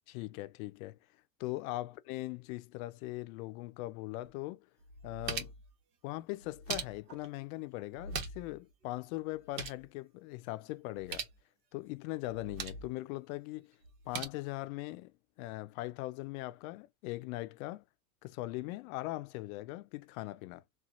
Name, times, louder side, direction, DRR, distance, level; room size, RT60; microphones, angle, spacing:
voice 1, 0.1-1.0 1.4-4.6 5.0-5.5 6.0-11.3 11.7-13.8 14.1-17.8 18.2-20.6, left 19 dB, 60° left, 0.5 m, -40 dB
sound 1, 4.2-4.3 4.8-5.7 6.4-7.3 7.9-8.6 8.8-8.9 9.3-9.8 10.9-11.4 12.2-12.9 13.8-14.2, right 5 dB, 80° right, 1.3 m, -41 dB
4.3 x 2.4 x 2.5 m
hypercardioid pair, 100°, 49 cm